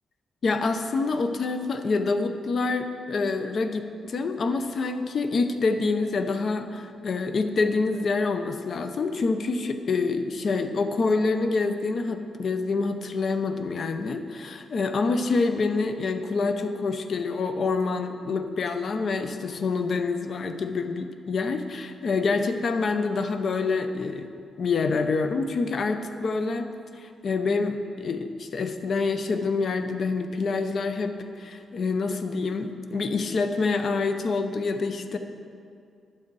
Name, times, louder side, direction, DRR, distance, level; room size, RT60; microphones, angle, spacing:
voice 1, 0.4-24.3 24.6-26.7 27.0-35.2, left 4 dB, 50° left, 8 dB, 0.7 m, -26 dB
11.5 x 7.2 x 4.7 m, 2.4 s
cardioid pair, 120°, 0 cm